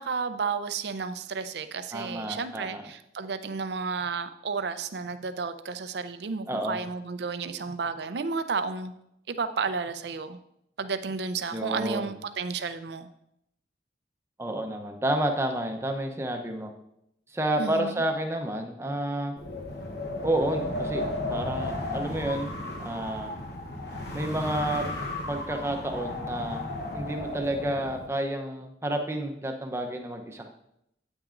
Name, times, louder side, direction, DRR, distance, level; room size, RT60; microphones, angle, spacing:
voice 1, 0.0-8.9 9.3-10.4 10.8-13.1 17.6-18.0, right 5 dB, 70° right, 11 dB, 0.5 m, -32 dB
voice 2, 1.9-2.8 6.5-6.8 11.5-12.1 14.4-16.7 17.3-19.3 20.2-21.0 21.3-22.5 22.8-23.3 24.1-24.9 25.3-26.6 26.9-30.5, right 1 dB, 15° right, 4 dB, 0.7 m, -30 dB
Wind, 19.4-28.1, left 2 dB, 60° left, 1.0 m, -34 dB
9.1 x 8.8 x 2.5 m, 0.79 s
head